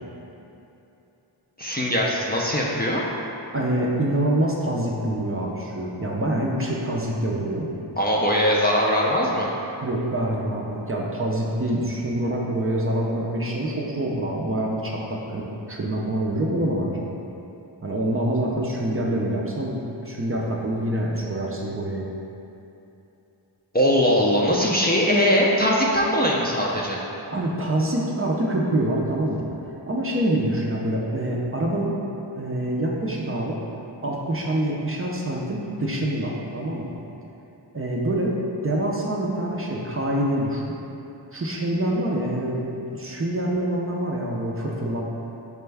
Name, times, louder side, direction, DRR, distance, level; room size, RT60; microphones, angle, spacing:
voice 1, 1.6-3.0 8.0-9.5 23.7-27.0, equal, 20° left, -4 dB, 0.4 m, -21 dB
voice 2, 3.5-7.7 9.8-15.4 15.7-17.1 17.8-22.1 27.3-29.5 29.9-32.0 32.3-33.6 34.0-36.9 37.7-38.3 38.6-40.7 41.3-42.6 42.9-45.0, right 1 dB, 30° right, -3 dB, 0.5 m, -25 dB
5.1 x 2.2 x 3.3 m, 2.9 s
cardioid pair, 45°, 46 cm